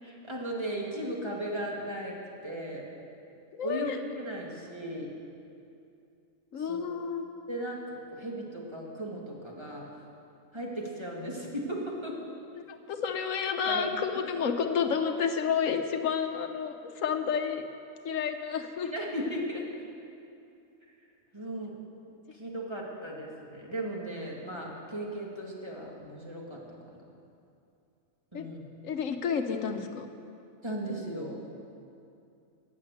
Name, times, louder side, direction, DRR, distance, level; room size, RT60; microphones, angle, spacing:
voice 1, 0.0-2.2 2.4-2.9 3.6-5.1 6.6-7.0 7.5-9.9 10.5-12.2 13.7-14.2 18.8-19.7 21.3-21.7 22.3-26.6 28.3-28.7 30.6-31.4, right 1 dB, 20° right, -3 dB, 2.4 m, -36 dB
voice 2, 3.5-4.0 6.5-7.3 12.7-17.6 18.0-18.9 28.3-28.5 28.8-30.1, left 6 dB, 80° left, 7 dB, 1.2 m, -30 dB
19.0 x 7.7 x 8.0 m, 2.6 s
omnidirectional pair, 1.4 m